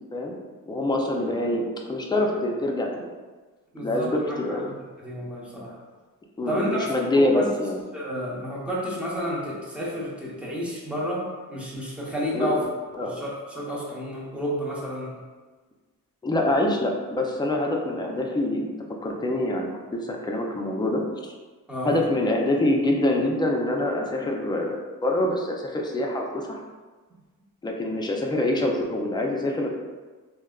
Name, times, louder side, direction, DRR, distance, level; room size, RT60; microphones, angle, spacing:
voice 1, 0.7-3.1 3.8-4.7 6.4-7.8 12.3-12.5 12.9-13.2 16.2-18.7 19.0-21.3 21.8-26.6 27.6-29.7, left 1 dB, 15° left, 0 dB, 0.4 m, -25 dB
voice 2, 3.7-5.8 6.5-7.5 7.9-12.7 13.0-15.2 21.7-22.0, equal, 5° right, -6 dB, 0.7 m, -31 dB
3.3 x 2.1 x 2.3 m, 1.3 s
cardioid pair, 85°, 35 cm